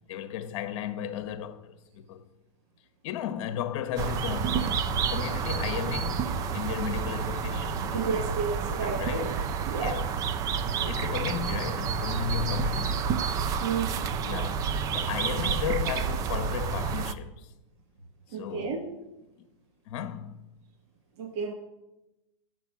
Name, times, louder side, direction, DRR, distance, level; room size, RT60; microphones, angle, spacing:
voice 1, 0.1-2.2 3.0-6.2 6.5-8.2 8.6-9.3 9.8-10.1 10.8-13.1 14.2-17.5 18.3-18.9 19.4-19.5 19.9-20.4, left 9 dB, 50° left, 0.9 m, -35 dB
sound 1, 4.0-17.1, right 6 dB, 20° right, 0.3 m, -29 dB
voice 2, 7.9-9.3 9.6-10.0 13.6-13.9 18.3-18.8 21.2-21.5, right 5 dB, 50° right, 1.3 m, -31 dB
8.9 x 6.0 x 6.0 m
hypercardioid pair, 140°, 18 cm